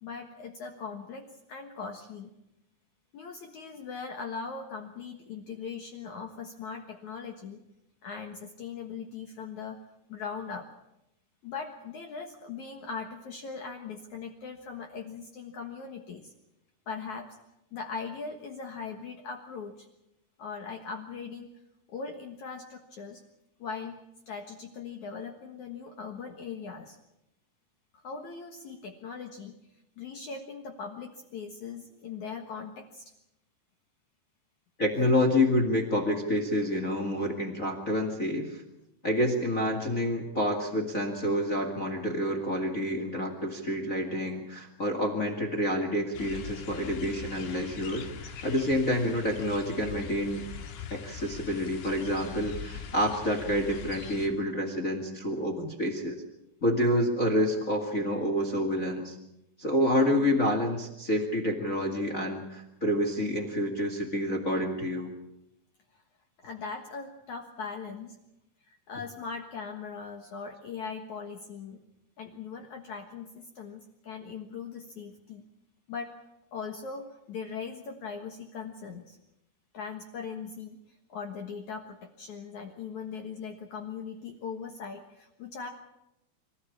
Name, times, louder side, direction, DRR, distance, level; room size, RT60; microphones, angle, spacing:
voice 1, 0.0-2.3 3.1-7.6 8.0-9.8 10.1-10.7 11.4-16.3 16.9-17.3 17.7-19.9 20.4-21.5 21.9-23.2 23.6-24.0 24.3-27.0 27.9-29.6 30.0-33.1 66.4-68.2 68.7-71.8 72.2-75.4 75.9-76.1 76.5-79.2 79.7-80.8 81.1-85.7, left 5 dB, 60° left, 4 dB, 2.1 m, -40 dB
voice 2, 34.8-38.6 39.0-50.4 50.9-56.2 56.6-59.2 59.6-65.1, left 1 dB, 40° left, 3 dB, 1.1 m, -28 dB
sound 1, 46.1-54.3, left 7 dB, 80° left, 4.5 m, -42 dB
25.5 x 14.5 x 8.6 m, 0.88 s
omnidirectional pair, 5.1 m